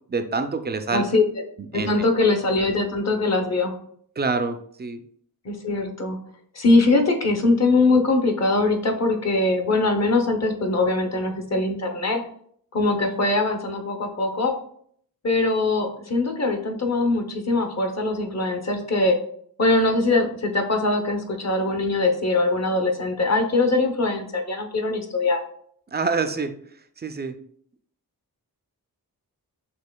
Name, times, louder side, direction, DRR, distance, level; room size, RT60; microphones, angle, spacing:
voice 1, 0.1-1.0 1.7-2.1 4.2-5.0 25.9-26.5 27.0-27.4, right 4 dB, 25° right, 8 dB, 0.4 m, -26 dB
voice 2, 0.9-1.2 1.7-3.7 5.4-6.2 6.5-12.2 12.7-14.5 15.2-19.2 19.6-25.4, left 2 dB, 45° left, 3 dB, 0.8 m, -22 dB
6.2 x 2.9 x 2.2 m, 0.63 s
wide cardioid pair, 75°, 38 cm